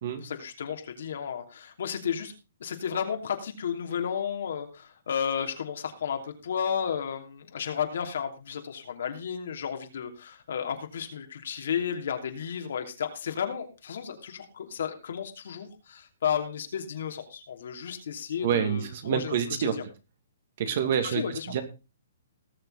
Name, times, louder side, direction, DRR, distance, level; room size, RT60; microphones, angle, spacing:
voice 1, 0.2-2.3 2.6-19.4 19.7-19.8 21.0-21.5, left 8 dB, 70° left, 4 dB, 2.8 m, -33 dB
voice 2, 18.4-19.8 20.6-21.6, right 8 dB, 50° right, 8 dB, 2.3 m, -27 dB
19.0 x 7.0 x 4.0 m, 0.29 s
hypercardioid pair, 155°, 0 cm